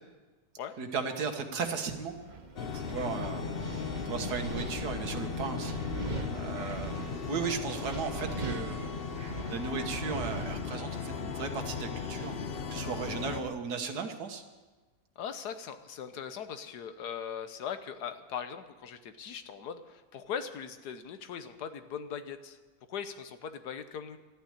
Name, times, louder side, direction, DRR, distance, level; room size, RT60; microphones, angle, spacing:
voice 1, 0.8-3.4 4.1-5.8 6.3-8.9 9.5-12.4 12.7-14.4, right 5 dB, 80° right, 6 dB, 1.9 m, -36 dB
Wind, 2.1-13.6, right 3 dB, 30° right, 1.1 m, -42 dB
sound 1, 2.6-13.4, left 6 dB, 50° left, 0.8 m, -37 dB
voice 2, 15.2-22.6 22.9-24.2, left 7 dB, 85° left, 10 dB, 1.5 m, -40 dB
13.0 x 9.4 x 9.9 m, 1.2 s
omnidirectional pair, 1.7 m